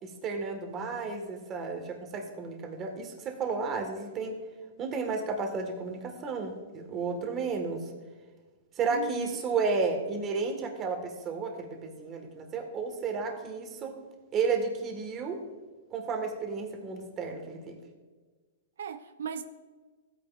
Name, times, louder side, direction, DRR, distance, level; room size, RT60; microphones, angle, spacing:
voice 1, 0.0-4.4 4.8-7.9 8.8-14.0 14.3-15.4 15.9-17.8, right 4 dB, 25° right, 1.6 m, -32 dB
voice 2, 8.9-9.4 18.8-19.4, right 7 dB, 85° right, 0.6 m, -37 dB
15.5 x 8.9 x 2.5 m
hypercardioid pair, 150°, 0 cm